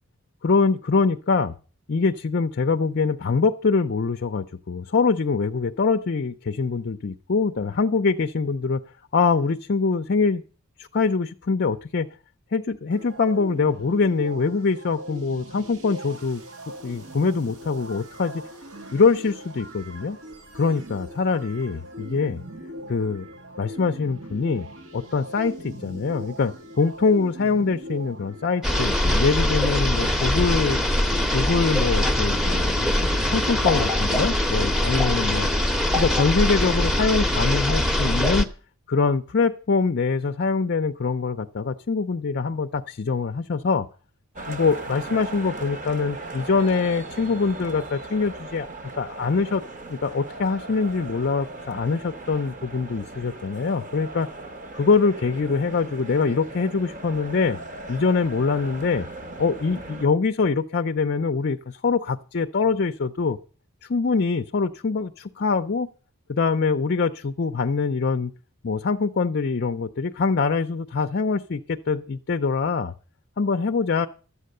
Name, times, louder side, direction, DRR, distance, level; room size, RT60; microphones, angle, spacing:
voice 1, 0.4-1.5 1.9-8.8 9.1-10.4 10.8-12.1 12.5-16.4 16.8-18.4 18.9-20.2 20.5-22.4 22.9-23.3 23.6-24.7 24.9-30.8 31.3-35.5 36.0-38.5 38.9-43.9 44.5-48.7 49.0-49.6 49.9-54.3 54.7-57.6 57.9-59.1 59.4-63.4 63.8-65.9 66.3-68.3 68.6-72.9 73.4-74.1, left 4 dB, 50° left, 8 dB, 0.5 m, -24 dB
sound 1, 12.9-28.9, equal, 70° right, 2.1 m, -40 dB
sound 2, 28.6-38.4, left 1 dB, ahead, 0.9 m, -22 dB
sound 3, 44.4-60.1, right 2 dB, 35° right, 1.2 m, -38 dB
12.5 x 8.3 x 6.6 m, 0.39 s
head